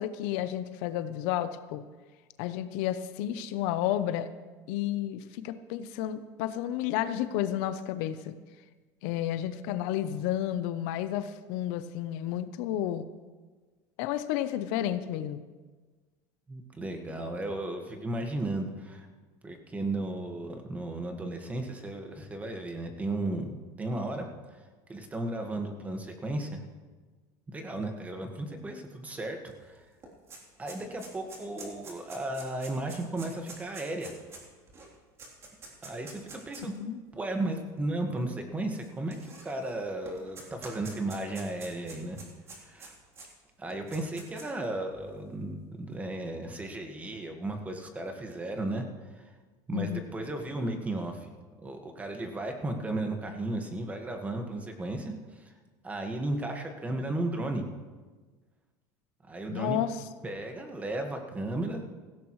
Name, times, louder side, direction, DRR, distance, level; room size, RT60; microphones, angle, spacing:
voice 1, 0.0-1.8 2.4-4.3 4.7-8.3 9.0-13.1 14.0-15.4 36.7-37.0 49.7-50.0 59.5-60.0, left 11 dB, 75° left, 11 dB, 0.8 m, -31 dB
voice 2, 16.5-19.1 19.4-23.5 23.8-24.6 24.9-26.6 27.5-29.8 30.6-34.1 35.8-36.7 37.1-42.2 42.6-42.9 43.6-48.9 49.1-49.3 49.7-51.3 51.6-55.5 55.8-57.6 59.3-59.8 60.2-61.8, right 2 dB, 15° right, 4 dB, 1.7 m, -35 dB
sound 1, 29.5-29.6 29.8-36.8 37.5-37.6 38.7-39.7 40.1-43.3 43.7-44.6, right 3 dB, 30° right, 3.5 m, -47 dB
17.0 x 15.5 x 3.2 m, 1.4 s
supercardioid pair, 130°, 9 cm